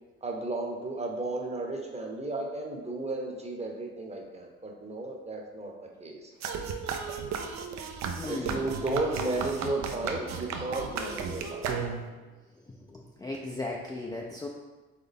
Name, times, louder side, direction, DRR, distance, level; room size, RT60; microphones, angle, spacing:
voice 1, 0.2-5.7 6.0-6.2 8.3-11.7, right 2 dB, 20° right, 1 dB, 0.8 m, -33 dB
sound 1, 6.4-12.2, right 5 dB, 60° right, 0.6 m, -35 dB
voice 2, 8.2-8.6 13.2-14.5, left 2 dB, 15° left, -1 dB, 0.4 m, -36 dB
4.1 x 3.3 x 3.5 m, 1.2 s
supercardioid pair, 75°, 30 cm